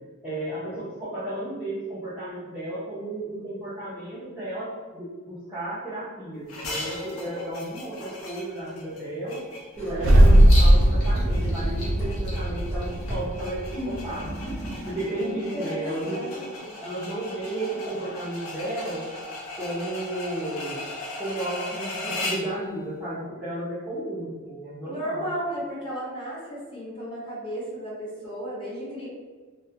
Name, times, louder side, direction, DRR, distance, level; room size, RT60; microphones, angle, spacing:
voice 1, 0.2-9.4 9.8-14.3 14.8-16.3 16.5-19.1 19.5-20.8 21.2-25.3, right 1 dB, 5° right, -13 dB, 0.6 m, -33 dB
sound 1, 6.5-22.5, left 2 dB, 90° left, 0.5 m, -38 dB
Writing, 9.7-14.9, equal, 70° left, 1.0 m, -36 dB
sound 2, 9.9-14.2, equal, 65° right, 0.4 m, -18 dB
voice 2, 15.1-16.8 24.8-29.1, equal, 25° left, -9 dB, 1.0 m, -34 dB
2.2 x 2.2 x 2.8 m, 1.4 s
head